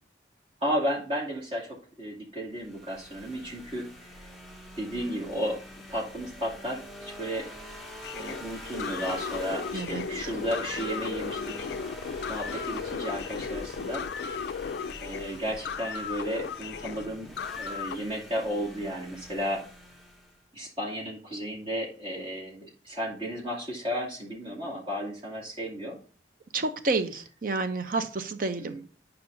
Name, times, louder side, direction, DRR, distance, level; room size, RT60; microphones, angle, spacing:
voice 1, 0.6-3.9 4.8-5.6 5.9-7.5 8.1-11.7 12.3-14.1 15.0-19.6 20.5-26.0 28.6-28.8, equal, 30° right, -4 dB, 2.3 m, -33 dB
sound 1, 2.6-20.4, equal, ahead, 0.9 m, -45 dB
sound 2, 8.0-18.0, left 6 dB, 60° left, 0.3 m, -35 dB
voice 2, 26.5-28.8, right 3 dB, 45° right, 9 dB, 0.6 m, -29 dB
9.4 x 5.7 x 2.6 m, 0.41 s
head